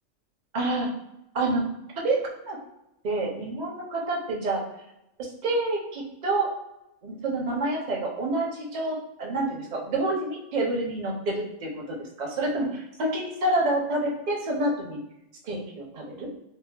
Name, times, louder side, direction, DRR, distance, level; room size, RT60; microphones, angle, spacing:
voice 1, 0.5-0.9 1.3-1.6 2.0-2.2 2.5-2.6 3.0-4.6 5.4-6.5 7.0-15.0 15.4-16.3, right 2 dB, 45° right, -1 dB, 0.6 m, -28 dB
4.2 x 2.0 x 2.2 m, 0.88 s
omnidirectional pair, 1.4 m